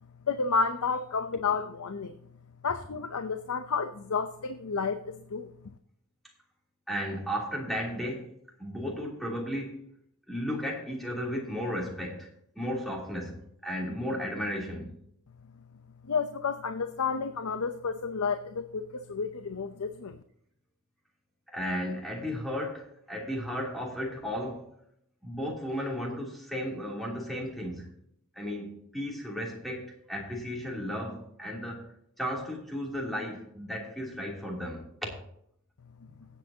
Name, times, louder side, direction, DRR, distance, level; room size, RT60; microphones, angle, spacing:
voice 1, 0.3-2.2 2.6-5.5 16.0-20.2, left 5 dB, 75° left, 0.7 m, -31 dB
voice 2, 6.9-8.3 8.6-9.8 10.3-12.3 12.5-14.9 21.5-24.7 25.2-27.9 28.3-31.9 32.2-35.1 36.1-36.2, equal, ahead, 2.9 m, -34 dB
18.0 x 8.3 x 2.8 m
head